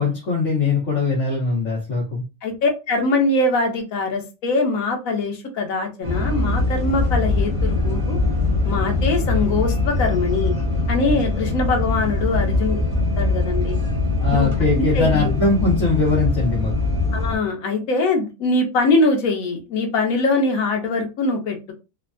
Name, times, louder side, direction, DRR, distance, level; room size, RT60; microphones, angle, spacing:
voice 1, 0.0-2.2 14.2-16.7, left 4 dB, 65° left, -4 dB, 1.2 m, -21 dB
voice 2, 2.4-8.2 8.7-10.5 10.9-12.8 13.2-13.8 14.3-14.5 14.7-15.3 17.1-21.7, left 3 dB, 90° left, 3 dB, 1.2 m, -22 dB
sound 1, 6.0-17.4, left 2 dB, 30° right, 0.8 m, -22 dB
3.2 x 2.2 x 2.5 m, 0.28 s
omnidirectional pair, 1.4 m